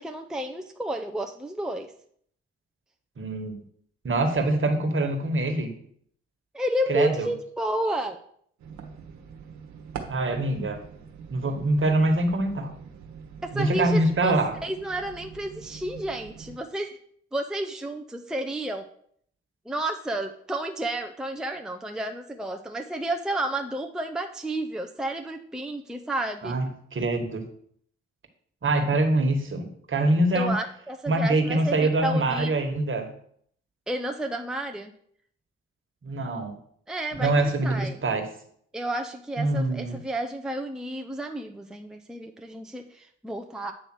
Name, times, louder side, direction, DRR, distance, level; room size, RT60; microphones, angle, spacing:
voice 1, 0.0-1.9 6.5-8.2 13.4-14.4 14.6-17.0 17.3-18.9 19.7-26.6 30.3-32.5 33.9-34.9 36.9-38.0 38.7-43.7, right 1 dB, ahead, 3 dB, 0.7 m, -31 dB
voice 2, 3.2-3.5 4.0-5.7 6.9-7.3 10.1-10.8 11.3-12.7 13.5-14.5 26.4-27.5 28.6-30.5 31.1-33.1 36.0-36.6 37.2-38.3 39.4-40.0, right 2 dB, 40° right, 5 dB, 1.6 m, -24 dB
sound 1, 8.6-16.6, right 6 dB, 70° right, 1.2 m, -43 dB
8.8 x 3.3 x 6.2 m, 0.64 s
hypercardioid pair, 45°, 30 cm